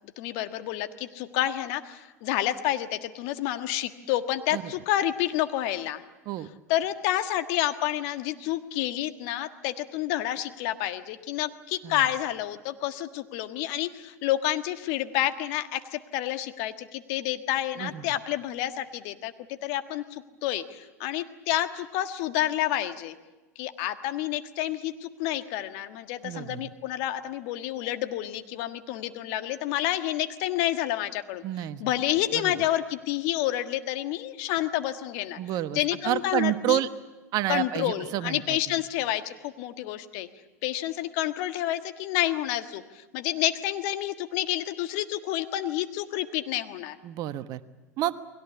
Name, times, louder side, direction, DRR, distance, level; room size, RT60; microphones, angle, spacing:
voice 1, 0.2-6.0 6.7-19.3 19.6-23.1 23.6-31.4 31.8-35.4 35.7-36.8 37.5-40.3 40.6-47.0, left 13 dB, 55° left, 8 dB, 1.6 m, -29 dB
voice 2, 26.2-26.7 31.4-31.8 32.3-32.5 35.4-36.9 37.3-38.6 47.0-47.6 48.0-48.1, right 13 dB, 45° right, 12 dB, 1.2 m, -29 dB
29.5 x 21.5 x 7.0 m, 1.1 s
figure-of-eight pair, 90°, 9 cm